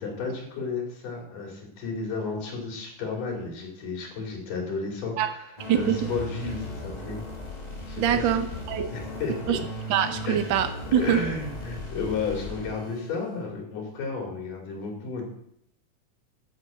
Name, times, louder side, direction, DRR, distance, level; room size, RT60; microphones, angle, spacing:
voice 1, 0.0-7.2 7.9-8.2 8.9-9.6 10.2-10.4 11.0-15.2, left 4 dB, 90° left, -1 dB, 4.5 m, -33 dB
sound 1, 5.6-13.3, left 1 dB, 15° left, 1.9 m, -37 dB
voice 2, 5.7-6.1 8.0-8.9 9.5-9.6 9.9-11.2, right 9 dB, 80° right, 7 dB, 1.0 m, -24 dB
11.0 x 7.0 x 7.7 m, 0.75 s
omnidirectional pair, 3.7 m